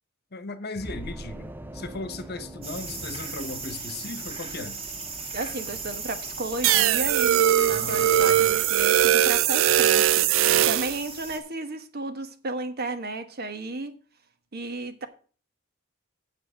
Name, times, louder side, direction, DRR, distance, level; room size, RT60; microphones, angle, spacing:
voice 1, 0.3-4.8 7.7-8.5, left 3 dB, 55° left, 1.1 m, -37 dB
sound 1, 0.8-4.2, right 1 dB, 10° right, 0.5 m, -42 dB
sound 2, 2.6-11.4, right 4 dB, 30° right, 2.0 m, -37 dB
voice 2, 5.3-13.9 14.5-15.1, right 2 dB, 50° right, 1.3 m, -33 dB
sound 3, 6.6-11.0, right 11 dB, 70° right, 0.4 m, -20 dB
8.7 x 7.6 x 5.1 m
head